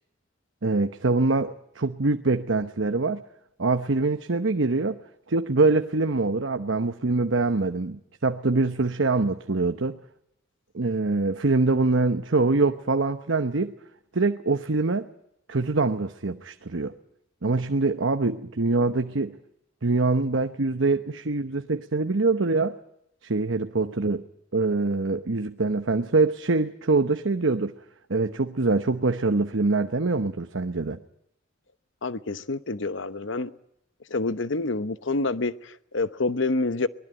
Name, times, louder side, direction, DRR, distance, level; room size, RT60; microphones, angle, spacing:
voice 1, 0.6-3.2 3.6-5.0 5.3-10.0 10.7-13.7 14.1-15.1 15.5-16.9 17.4-19.4 19.8-22.8 23.2-24.2 24.5-27.7 28.1-31.0, right 3 dB, 70° right, 1.0 m, -24 dB
voice 2, 32.0-33.5 34.1-36.9, left 3 dB, 65° left, 1.0 m, -27 dB
23.5 x 20.5 x 8.9 m
head